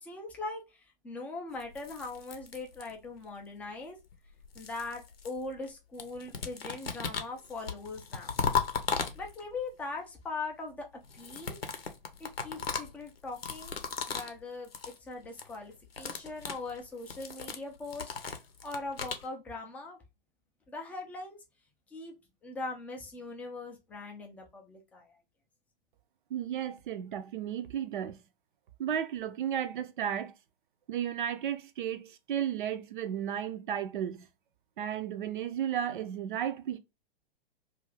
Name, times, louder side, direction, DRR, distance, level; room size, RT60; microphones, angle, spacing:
voice 1, 0.0-4.0 4.5-8.3 9.1-10.9 11.1-11.6 12.2-13.8 14.1-14.7 15.0-18.2 18.6-20.0 20.7-21.4 21.9-22.1 22.4-25.2, left 3 dB, 5° left, 0.3 m, -41 dB
sound 1, 1.6-3.2 4.1-5.7 6.0-9.6 11.0-14.4 14.6-15.0 15.2-15.6 15.8-19.3, left 6 dB, 85° left, 0.7 m, -37 dB
voice 2, 26.3-28.2 28.8-30.3 30.9-34.2 34.8-36.8, right 9 dB, 60° right, 0.5 m, -34 dB
2.6 x 2.4 x 3.1 m
figure-of-eight pair, 115°, 29 cm